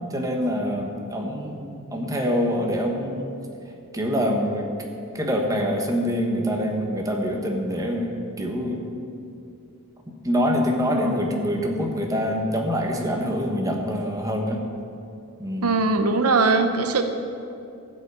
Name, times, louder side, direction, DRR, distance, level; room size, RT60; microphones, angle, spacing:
voice 1, 0.0-3.3 3.9-4.7 5.1-8.1 8.4-8.9 10.2-14.6 15.4-15.8, equal, 15° right, 1 dB, 1.1 m, -25 dB
voice 2, 15.6-17.0, right 3 dB, 85° right, 7 dB, 0.8 m, -20 dB
12.5 x 5.5 x 8.1 m, 2.6 s
head